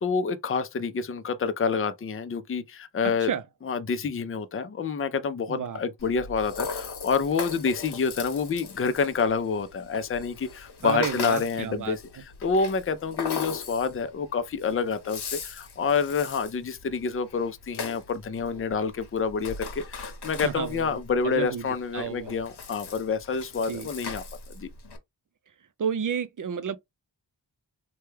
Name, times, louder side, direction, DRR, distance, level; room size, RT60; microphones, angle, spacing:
voice 1, 0.0-3.3 3.7-12.0 12.4-24.2 24.6-24.7, left 5 dB, 30° left, 0.5 m, -28 dB
voice 2, 3.0-3.4 5.5-5.8 10.8-12.2 20.4-22.3 23.7-23.9 25.8-26.8, right 7 dB, 50° right, 0.5 m, -32 dB
Rattle (instrument), 6.0-25.0, left 5 dB, 65° left, 0.9 m, -39 dB
3.2 x 2.3 x 3.1 m
cardioid pair, 45°, 42 cm